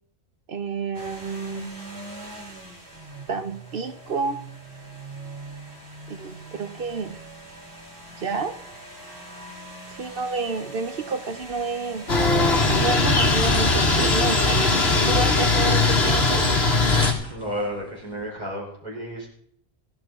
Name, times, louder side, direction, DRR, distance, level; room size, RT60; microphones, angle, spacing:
voice 1, 0.5-1.7 3.3-4.4 6.1-7.2 8.2-8.6 10.0-12.1 12.8-16.5, right 4 dB, 60° right, 10 dB, 1.0 m, -29 dB
sound 1, 0.9-14.1, right 2 dB, 80° right, 3.4 m, -41 dB
sound 2, 11.3-18.3, left 2 dB, 5° left, 1.7 m, -39 dB
sound 3, 12.1-17.1, left 3 dB, 70° left, 2.0 m, -20 dB
voice 2, 17.2-19.3, equal, 40° right, -2 dB, 3.9 m, -32 dB
15.5 x 13.5 x 3.7 m, 0.63 s
omnidirectional pair, 1.1 m